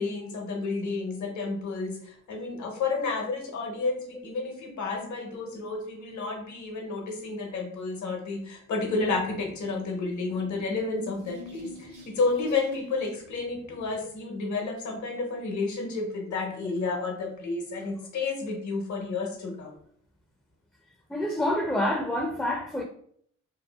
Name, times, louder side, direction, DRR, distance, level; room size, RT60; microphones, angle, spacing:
voice 1, 0.0-19.7, left 3 dB, 65° left, 0.8 m, -31 dB
sound 1, 8.8-14.2, left 2 dB, 80° right, 0.7 m, -48 dB
voice 2, 21.1-22.8, left 1 dB, 5° left, 0.4 m, -27 dB
2.7 x 2.4 x 2.2 m
supercardioid pair, 45°, 32 cm